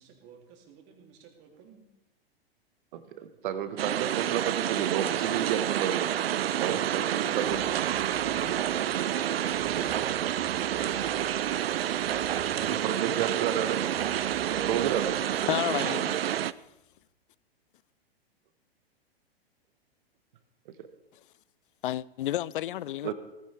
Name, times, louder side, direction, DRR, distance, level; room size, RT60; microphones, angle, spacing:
voice 1, 0.0-1.9 6.6-6.8 7.2-7.6, right 6 dB, 35° right, 3.3 m, -48 dB
voice 2, 2.9-6.1 6.6-7.6 9.6-9.8 10.8-11.0 12.7-13.8 14.7-15.1 20.8-20.9 23.0-23.1, right 9 dB, 55° right, 1.6 m, -31 dB
sound 1, 3.8-16.5, right 11 dB, 70° right, 0.5 m, -29 dB
sound 2, 7.4-16.8, equal, 10° left, 2.5 m, -52 dB
voice 3, 15.5-16.2 21.8-23.1, left 13 dB, 55° left, 0.5 m, -31 dB
18.0 x 15.5 x 3.6 m
figure-of-eight pair, 105°, 31 cm